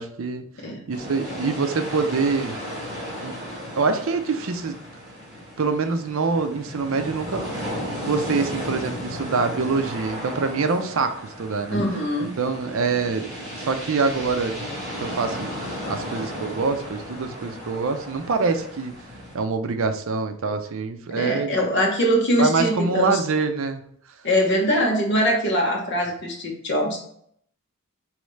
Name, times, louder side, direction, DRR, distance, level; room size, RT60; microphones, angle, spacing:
voice 1, 0.0-0.4 0.9-2.6 3.2-3.3 3.8-4.8 5.6-7.4 7.7-11.8 12.4-13.3 13.6-14.6 15.0-15.5 15.9-18.9 19.3-21.5 22.4-23.8, right 4 dB, 60° right, 8 dB, 0.5 m, -25 dB
sound 1, 0.9-19.4, equal, 15° right, 2.0 m, -35 dB
voice 2, 11.7-12.3 21.1-23.2 24.2-27.0, equal, 50° left, -1 dB, 1.2 m, -22 dB
5.1 x 3.1 x 3.2 m, 0.66 s
head